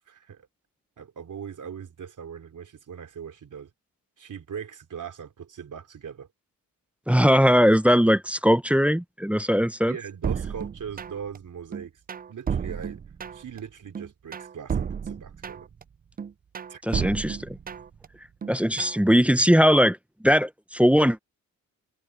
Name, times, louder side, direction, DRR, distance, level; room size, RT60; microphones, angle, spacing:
voice 1, 0.1-0.5 1.0-3.7 4.2-6.3 9.9-12.0 12.3-13.0 13.3-15.7 16.7-16.8, right 7 dB, 60° right, 3.5 m, -40 dB
voice 2, 7.1-10.0 16.8-17.6 18.5-20.0 20.2-21.2, equal, 5° right, 0.8 m, -20 dB
sound 1, 10.2-11.4 11.7-13.6 13.9-15.8 16.2-18.1 18.4-19.0, right 7 dB, 25° right, 0.4 m, -32 dB
cardioid pair, 70°, 35 cm